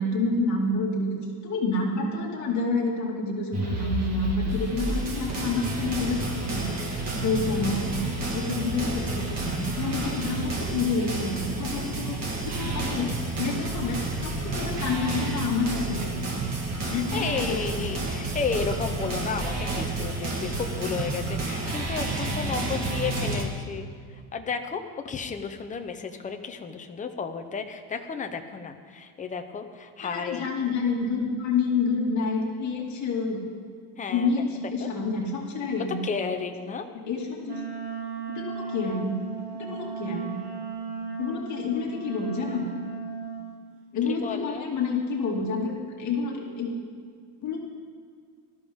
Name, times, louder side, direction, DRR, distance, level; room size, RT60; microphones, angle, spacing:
voice 1, 0.0-6.7 7.1-8.0 8.3-12.2 12.5-16.4 16.9-17.9 30.0-33.4 34.1-36.0 37.1-37.5 38.3-39.2 39.6-40.4 41.2-42.7 43.9-46.7 47.4-47.6, left 3 dB, 35° left, -3 dB, 2.5 m, -28 dB
sound 1, 3.5-23.4, right 2 dB, 35° right, 2.0 m, -30 dB
voice 2, 16.9-23.9 24.3-30.5 34.0-34.3 34.8-34.9 36.0-36.9 44.2-44.6, left 5 dB, 15° left, 5 dB, 0.7 m, -33 dB
Wind instrument woodwind instrument, 37.4-43.5, right 5 dB, 75° right, 2.3 m, -36 dB
19.0 x 13.5 x 3.6 m, 2.1 s
cardioid pair, 165°, 46 cm